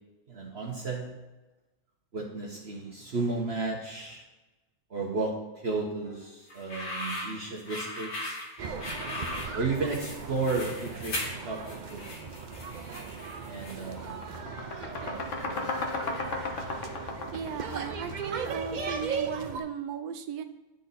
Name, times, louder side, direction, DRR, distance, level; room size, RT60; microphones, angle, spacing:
voice 1, 0.3-1.2 2.1-4.2 4.9-8.4 9.5-12.2 13.5-14.1 14.5-14.6 15.0-15.2 15.5-16.0, right 3 dB, 50° right, -2 dB, 1.2 m, -33 dB
sound 1, 6.5-14.1, left 1 dB, 80° left, 2.1 m, -38 dB
sound 2, 8.6-19.6, right 5 dB, 70° right, 0.4 m, -38 dB
sound 3, 13.1-13.3 13.7-18.6, left 3 dB, 55° left, 1.3 m, -35 dB
voice 2, 17.3-20.4, right 7 dB, 90° right, 9 dB, 1.2 m, -36 dB
10.0 x 4.1 x 4.0 m, 1.1 s
omnidirectional pair, 1.6 m